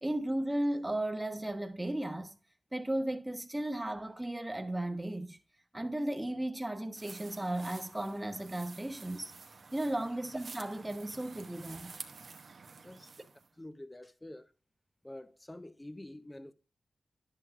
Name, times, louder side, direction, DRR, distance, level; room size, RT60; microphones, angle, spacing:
voice 1, 0.0-2.4 2.7-5.4 5.7-9.3 9.7-12.0, right 1 dB, 15° right, 1.1 m, -35 dB
sound 1, 6.9-13.5, right 4 dB, 70° right, 0.9 m, -50 dB
voice 2, 13.6-14.5 15.0-16.5, left 1 dB, 20° left, 0.8 m, -47 dB
10.5 x 8.0 x 2.4 m
cardioid pair, 45°, 0 cm